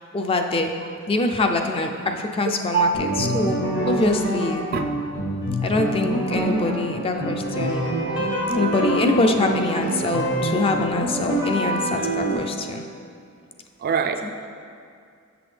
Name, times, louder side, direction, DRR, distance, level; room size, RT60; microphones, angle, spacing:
voice 1, 0.1-0.7 1.1-3.6 3.9-4.7 5.6-7.9 8.5-12.8 14.2-14.3, left 2 dB, 25° left, 4 dB, 0.4 m, -24 dB
voice 2, 2.7-3.1 4.7-4.8 13.8-14.3, right 5 dB, 45° right, 7 dB, 0.3 m, -23 dB
sound 1, 2.9-12.4, right 1 dB, 60° left, 1.6 m, -25 dB
7.5 x 6.0 x 3.3 m, 2.3 s
head